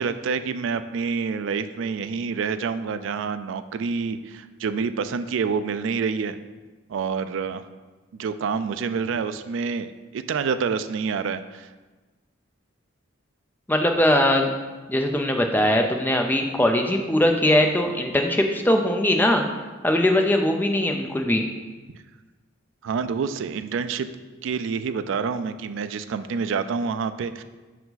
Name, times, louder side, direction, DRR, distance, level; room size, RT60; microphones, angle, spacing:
voice 1, 0.0-6.4 6.9-7.6 8.1-11.7 22.8-24.1 24.4-27.4, right 5 dB, 65° right, 11 dB, 0.3 m, -27 dB
voice 2, 13.7-14.5 14.9-19.4 19.8-21.5, left 1 dB, 10° left, 3 dB, 0.4 m, -21 dB
5.3 x 4.6 x 4.0 m, 1.3 s
head